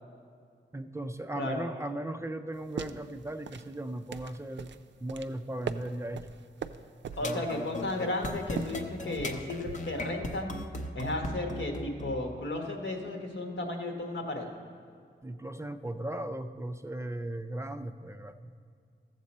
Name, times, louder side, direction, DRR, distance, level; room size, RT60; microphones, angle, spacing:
voice 1, 0.7-4.7 5.0-6.3 7.2-7.5 15.2-18.5, right 1 dB, 15° right, 9 dB, 0.3 m, -37 dB
voice 2, 1.3-1.7 7.2-10.5 10.9-14.5, left 2 dB, 80° left, 2 dB, 1.3 m, -34 dB
sound 1, 2.5-10.0, right 7 dB, 85° right, 0.4 m, -42 dB
sound 2, 7.1-12.2, left 1 dB, 45° left, 0.6 m, -37 dB
14.5 x 7.4 x 4.2 m, 2.3 s
wide cardioid pair, 145°, 18 cm